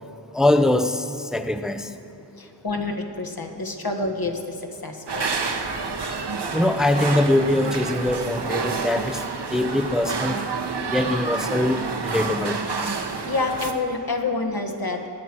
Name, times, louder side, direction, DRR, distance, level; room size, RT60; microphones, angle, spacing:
voice 1, 0.3-1.9 6.5-9.2 9.5-10.4 10.9-12.6, left 1 dB, ahead, 9 dB, 0.6 m, -22 dB
voice 2, 2.4-5.5 6.4-6.5 13.0-15.1, left 3 dB, 55° left, 4 dB, 1.5 m, -28 dB
sound 1, 5.1-13.7, right 4 dB, 65° right, 1.1 m, -29 dB
22.0 x 9.2 x 6.0 m, 2.5 s
wide cardioid pair, 80°, 44 cm